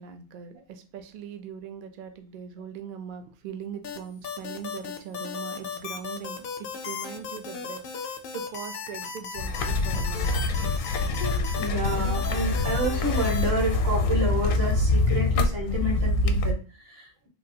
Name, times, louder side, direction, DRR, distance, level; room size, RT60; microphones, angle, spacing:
voice 1, 0.0-10.4, right 7 dB, 70° right, 6 dB, 0.4 m, -40 dB
sound 1, 3.8-13.5, left 6 dB, 60° left, 0.6 m, -36 dB
sound 2, 9.4-16.5, left 2 dB, 80° left, 1.0 m, -25 dB
voice 2, 11.6-17.3, right 1 dB, 50° right, 1 dB, 1.2 m, -30 dB
3.5 x 2.4 x 2.6 m, 0.35 s
omnidirectional pair, 1.4 m